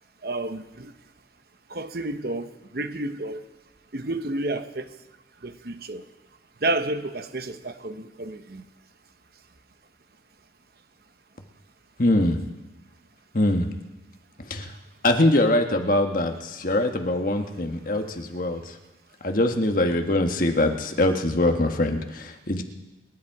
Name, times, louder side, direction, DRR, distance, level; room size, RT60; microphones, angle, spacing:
voice 1, 0.2-0.9 1.7-3.4 3.9-4.9 5.4-6.0 6.6-8.6, right 2 dB, 55° right, 1.0 m, -30 dB
voice 2, 12.0-12.4 13.3-13.7 14.5-14.7 15.0-18.7 19.2-22.6, left 1 dB, 45° left, 1.5 m, -23 dB
28.0 x 10.5 x 4.8 m
head